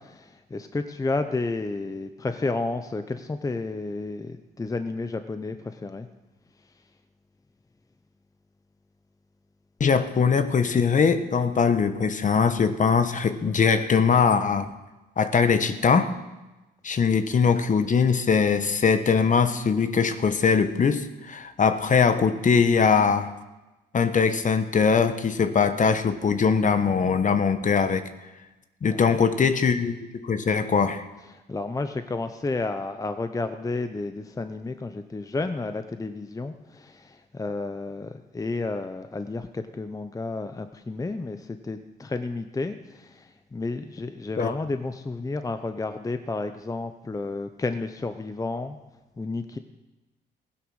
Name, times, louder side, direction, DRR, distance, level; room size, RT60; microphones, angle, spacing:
voice 1, 0.0-6.1 28.9-29.2 31.3-48.8 49.2-49.6, left 3 dB, 15° left, 9 dB, 0.7 m, -31 dB
voice 2, 9.8-14.7 15.2-16.1 16.8-23.3 23.9-28.1 28.8-31.0 44.4-44.5, left 5 dB, 40° left, 10 dB, 1.1 m, -21 dB
16.0 x 10.0 x 6.4 m, 1.1 s
cardioid pair, 90°, 20 cm